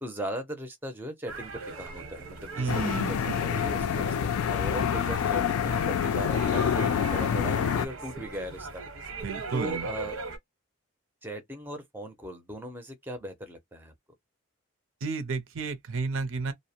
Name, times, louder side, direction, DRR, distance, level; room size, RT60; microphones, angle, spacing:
voice 1, 0.0-8.8 9.5-10.1 11.2-13.9, equal, 10° right, 0.4 m, -38 dB
sound 1, 1.3-10.4, right 3 dB, 90° right, 0.9 m, -39 dB
voice 2, 2.6-3.3 9.2-9.9 15.0-16.5, right 4 dB, 65° right, 0.5 m, -32 dB
sound 2, 2.7-7.9, left 8 dB, 90° left, 0.3 m, -27 dB
2.5 x 2.0 x 2.7 m
head